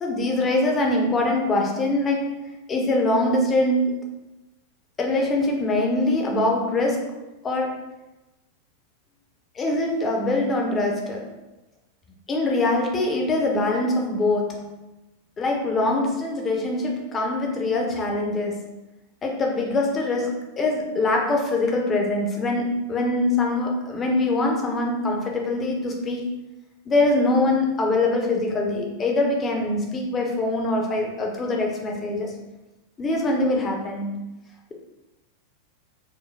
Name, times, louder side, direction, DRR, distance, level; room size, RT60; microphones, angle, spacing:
voice 1, 0.0-3.9 5.0-7.2 7.4-7.8 9.5-11.3 12.3-14.8 15.4-18.7 19.2-26.3 26.9-32.3 33.0-34.1, left 2 dB, 20° left, 0 dB, 0.8 m, -23 dB
4.6 x 2.2 x 3.5 m, 1.0 s
figure-of-eight pair, 90°, 0 cm